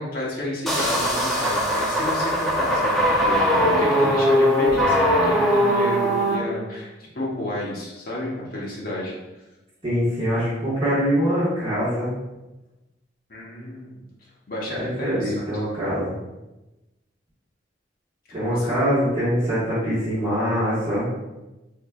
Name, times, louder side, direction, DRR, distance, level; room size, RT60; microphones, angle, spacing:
voice 1, 0.0-9.1 13.3-14.0 14.5-15.5 18.3-18.7, left 1 dB, 50° left, -4 dB, 1.0 m, -31 dB
sound 1, 0.7-6.4, equal, ahead, 0.5 m, -20 dB
voice 2, 9.8-12.1 14.7-16.2 18.3-21.1, equal, 30° right, -11 dB, 1.3 m, -23 dB
4.6 x 3.1 x 2.3 m, 1.0 s
head